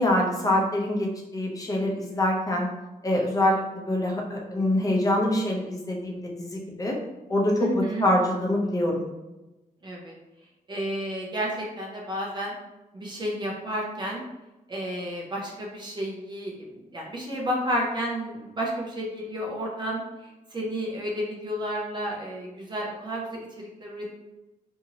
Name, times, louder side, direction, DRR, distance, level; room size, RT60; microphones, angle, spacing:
voice 1, 0.0-2.7 3.0-7.0 7.3-9.0, left 1 dB, 25° left, -1 dB, 0.6 m, -25 dB
voice 2, 7.6-8.1 9.8-10.1 10.7-12.5 12.9-14.2 14.7-16.7 16.9-20.0 20.5-24.1, equal, 30° right, -3 dB, 0.6 m, -31 dB
2.8 x 2.6 x 2.8 m, 1.0 s
wide cardioid pair, 135°, 15 cm